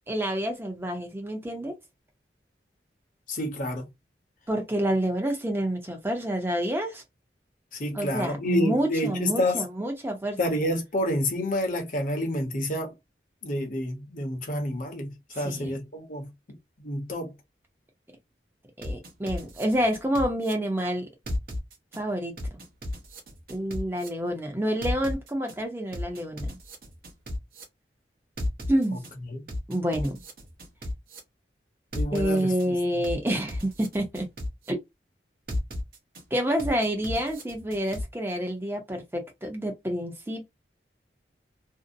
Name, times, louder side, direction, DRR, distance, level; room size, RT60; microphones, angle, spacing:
voice 1, 0.1-1.7 4.5-7.0 7.9-10.4 15.3-15.8 18.8-21.1 21.9-22.3 23.5-26.6 28.7-29.0 29.7-30.2 32.1-34.3 34.7-34.8 36.3-40.4, right 1 dB, 10° right, 0.6 m, -28 dB
voice 2, 3.3-3.8 7.7-9.6 10.4-12.9 13.4-16.3 16.8-17.3 29.2-29.4 31.9-32.7, left 1 dB, 50° left, 0.8 m, -29 dB
sound 1, 18.8-20.5 21.3-22.0 22.4-24.1 24.8-25.5 25.9-27.6 28.4-29.1 29.5-31.2 31.9-32.7 33.0-34.7 35.5-36.2 36.6-38.0, left 1 dB, 55° right, 0.7 m, -34 dB
2.6 x 2.0 x 2.5 m
head